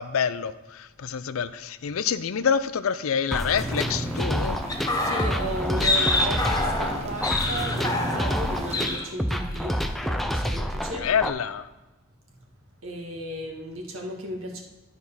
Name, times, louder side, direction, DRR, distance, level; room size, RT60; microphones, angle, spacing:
voice 1, 0.0-4.6 11.0-11.7, left 7 dB, 75° left, 14 dB, 0.5 m, -27 dB
sound 1, 3.3-11.3, equal, ahead, 0.4 m, -28 dB
sound 2, 3.6-9.0, right 1 dB, 30° right, 1.0 m, -36 dB
sound 3, 4.7-8.5 8.7-9.1 9.4-9.6, left 2 dB, 20° left, 0.9 m, -26 dB
voice 2, 4.9-11.1 12.8-14.6, right 1 dB, 70° right, 1 dB, 1.7 m, -34 dB
12.0 x 4.6 x 5.5 m, 1.1 s
head